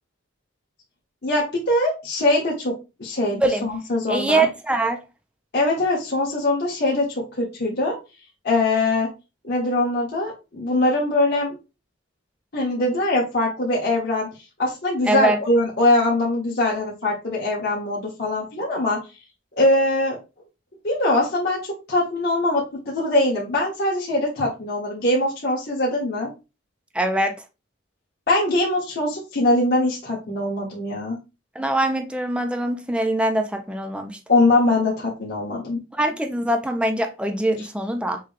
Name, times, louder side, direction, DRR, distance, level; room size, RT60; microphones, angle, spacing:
voice 1, 1.2-4.5 5.5-7.9 8.4-9.1 9.4-11.6 12.5-14.3 14.6-19.0 19.6-20.2 20.8-26.3 28.3-31.2 34.3-35.8, left 2 dB, 60° left, 1.8 m, -22 dB
voice 2, 4.1-5.0 15.1-15.4 26.9-27.4 31.6-34.2 35.9-38.2, right 1 dB, 5° right, 0.5 m, -23 dB
6.5 x 2.3 x 3.5 m
head